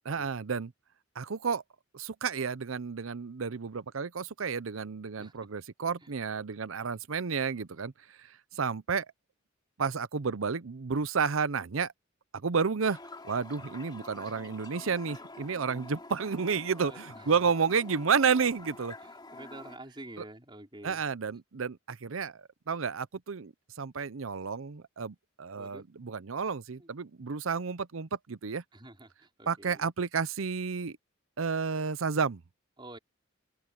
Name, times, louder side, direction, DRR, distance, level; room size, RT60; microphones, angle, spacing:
voice 1, 0.0-0.7 1.2-1.6 1.9-7.9 8.2-9.1 9.8-11.9 12.3-13.0 13.2-18.9 20.2-20.3 20.8-23.5 23.8-28.6 29.5-31.0 31.4-32.4, right 5 dB, 80° right, 0.7 m, -31 dB
Toilet flush, 12.8-19.8, left 2 dB, 20° left, 2.9 m, -48 dB
voice 2, 16.8-17.2 19.3-21.0 25.6-25.8 28.7-29.1 29.4-29.9 32.8-33.0, right 1 dB, 25° right, 4.3 m, -47 dB
open air
head